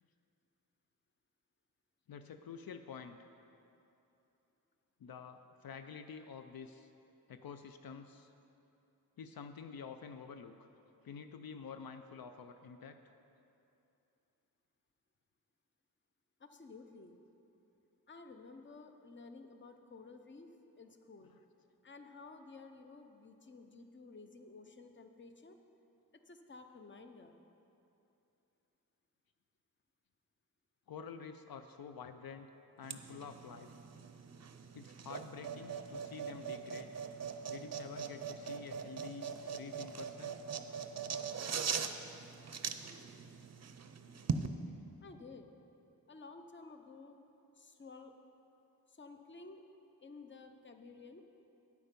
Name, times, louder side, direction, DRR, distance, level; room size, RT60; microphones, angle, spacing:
voice 1, 2.1-3.3 5.0-6.9 7.3-8.3 9.2-10.7 11.0-13.0 21.2-21.4 30.9-32.5 32.8-33.7 34.7-36.9 37.5-40.4 40.9-41.1, left 6 dB, 75° left, 8 dB, 0.5 m, -49 dB
voice 2, 16.4-17.2 18.1-20.5 20.8-21.3 21.8-25.6 26.3-27.3 45.0-45.5 46.1-47.2 47.6-48.1 48.9-49.6 50.0-51.2, left 3 dB, 30° left, 6 dB, 0.6 m, -53 dB
sound 1, 32.8-44.5, right 6 dB, 45° right, 0.5 m, -41 dB
9.5 x 8.6 x 5.2 m, 2.9 s
wide cardioid pair, 95°, 36 cm